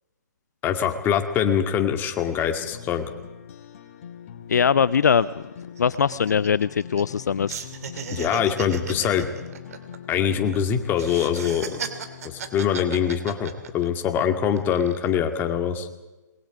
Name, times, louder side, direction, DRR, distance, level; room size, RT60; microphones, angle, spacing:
voice 1, 0.6-3.1 8.1-9.3 10.1-11.8 12.2-15.9, left 8 dB, 20° left, 6 dB, 2.1 m, -24 dB
sound 1, 2.6-12.6, left 8 dB, 45° left, 2.3 m, -41 dB
voice 2, 4.5-5.4 5.8-7.6, left 7 dB, 65° left, 18 dB, 0.6 m, -21 dB
sound 2, 4.7-4.8 5.1-5.2 5.6-7.2 7.5-10.6 10.9-14.1 14.5-15.1, right 7 dB, 55° right, 2.8 m, -36 dB
27.0 x 21.5 x 5.0 m, 1.1 s
figure-of-eight pair, 135°, 10 cm